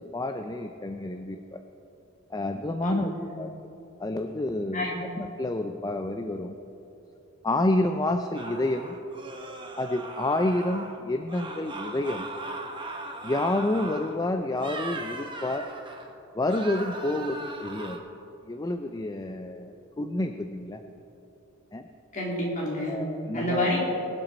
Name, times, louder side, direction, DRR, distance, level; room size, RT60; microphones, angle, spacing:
voice 1, 0.0-1.6 2.3-3.5 4.0-4.9 5.2-6.6 7.4-9.0 9.8-12.3 13.2-15.7 16.3-18.1 18.5-20.8 21.7-21.9 22.9-23.7, left 1 dB, 20° left, 6 dB, 0.4 m, -29 dB
voice 2, 2.8-3.2 4.7-5.1 22.1-23.0 23.3-23.8, left 1 dB, 40° left, -4 dB, 3.2 m, -28 dB
sound 1, 8.3-11.0 11.3-14.2 14.5-16.1 16.5-18.0, right 2 dB, 25° right, 1.1 m, -39 dB
22.5 x 7.8 x 4.2 m, 3.0 s
head